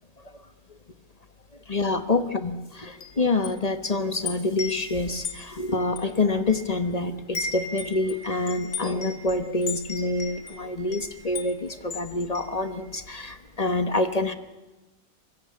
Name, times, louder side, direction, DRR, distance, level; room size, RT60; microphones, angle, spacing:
voice 1, 1.7-14.3, left 2 dB, 25° left, 9 dB, 0.9 m, -27 dB
Wind chime, 2.9-6.9 7.2-13.1, left 4 dB, 50° left, 2.6 m, -38 dB
24.0 x 21.5 x 8.5 m, 1.1 s
omnidirectional pair, 2.1 m